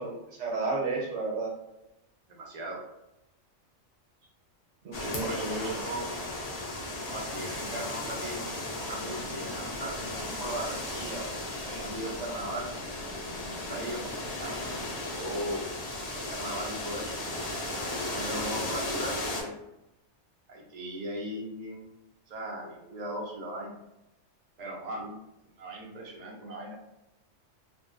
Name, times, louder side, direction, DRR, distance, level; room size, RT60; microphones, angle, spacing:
voice 1, 0.0-1.5 4.8-5.6 25.0-25.1, right 3 dB, 80° right, -2 dB, 1.1 m, -32 dB
voice 2, 2.3-2.8 4.9-6.1 7.0-12.7 13.5-15.7 16.0-17.5 18.0-19.5 20.5-22.0 22.3-23.8 24.6-25.0 25.6-26.8, right 1 dB, 50° right, -2 dB, 0.5 m, -38 dB
sound 1, 4.9-19.4, left 1 dB, 50° left, 0.4 m, -35 dB
2.5 x 2.1 x 2.4 m, 0.91 s
omnidirectional pair, 1.3 m